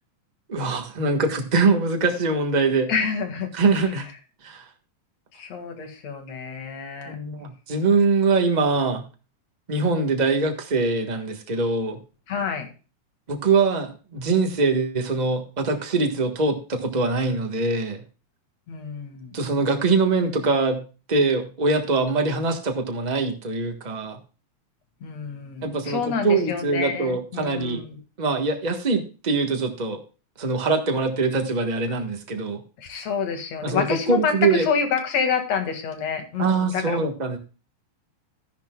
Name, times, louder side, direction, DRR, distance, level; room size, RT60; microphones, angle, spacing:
voice 1, 0.5-2.9 3.5-4.1 4.4-4.6 7.0-9.1 9.7-12.0 13.3-18.0 19.3-24.2 25.6-27.8 28.2-30.0 30.4-32.6 33.6-34.6 36.4-37.4, right 3 dB, 85° right, 4 dB, 0.3 m, -23 dB
voice 2, 2.9-3.5 5.3-7.2 12.3-12.7 18.7-19.4 25.0-28.0 32.8-37.0, left 6 dB, 65° left, 5 dB, 3.1 m, -28 dB
13.5 x 10.5 x 2.3 m, 0.34 s
omnidirectional pair, 3.4 m